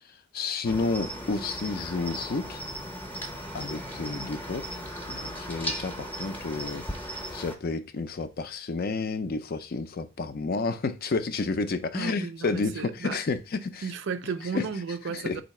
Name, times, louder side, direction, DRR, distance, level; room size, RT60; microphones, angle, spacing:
voice 1, 0.3-2.6 3.5-4.7 5.1-13.9 14.5-14.7 15.1-15.4, left 4 dB, 45° left, 0.4 m, -31 dB
Cricket, 0.6-7.6, equal, 10° left, 0.7 m, -37 dB
voice 2, 11.9-13.2 13.8-15.4, right 5 dB, 60° right, 0.4 m, -34 dB
3.9 x 2.7 x 4.2 m
head